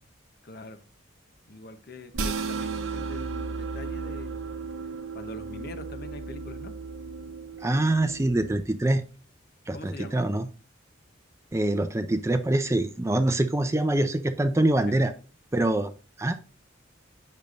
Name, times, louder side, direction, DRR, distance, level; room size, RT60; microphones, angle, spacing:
voice 1, 0.4-0.8 1.5-4.4 5.1-6.8 9.7-10.2 14.9-15.0, left 2 dB, 50° left, 0.8 m, -43 dB
sound 1, 2.1-8.6, right 4 dB, 85° right, 0.9 m, -34 dB
voice 2, 7.6-9.0 9.7-10.5 11.5-15.1 15.5-15.9 16.2-16.4, right 1 dB, 15° right, 0.4 m, -24 dB
8.7 x 6.5 x 2.5 m
head